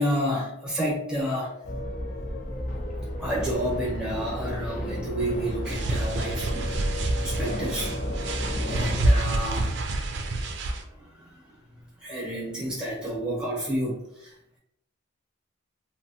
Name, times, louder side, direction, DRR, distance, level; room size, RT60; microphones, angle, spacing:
voice 1, 0.0-1.5 3.2-7.9 8.3-9.8 10.9-11.6 12.0-14.6, equal, 5° right, -5 dB, 0.8 m, -30 dB
sound 1, 1.6-9.0, left 1 dB, 40° left, 0.4 m, -32 dB
sound 2, 5.6-10.8, right 1 dB, 60° right, 0.4 m, -27 dB
2.9 x 2.0 x 2.7 m, 0.79 s
head